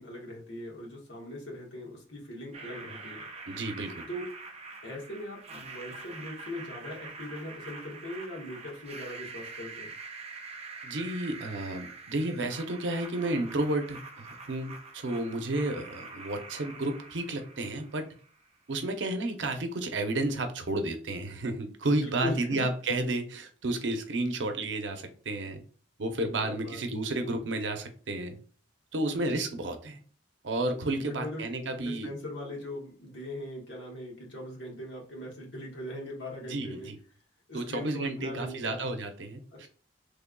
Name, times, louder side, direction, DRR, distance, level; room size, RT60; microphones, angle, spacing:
voice 1, 0.0-3.2 4.1-4.2 4.8-9.9 21.9-22.7 26.4-26.8 30.9-31.4 31.7-36.9 37.5-38.8 39.5-39.7, left 1 dB, 75° left, -2 dB, 1.3 m, -40 dB
sound 1, 2.5-18.5, right 3 dB, 35° right, 0.5 m, -45 dB
voice 2, 3.5-4.0 10.8-18.1 18.7-25.6 26.0-28.4 28.9-30.0 30.4-32.1 36.5-37.0 37.5-39.7, right 2 dB, 85° right, 6 dB, 0.7 m, -32 dB
3.3 x 2.2 x 3.6 m, 0.42 s
head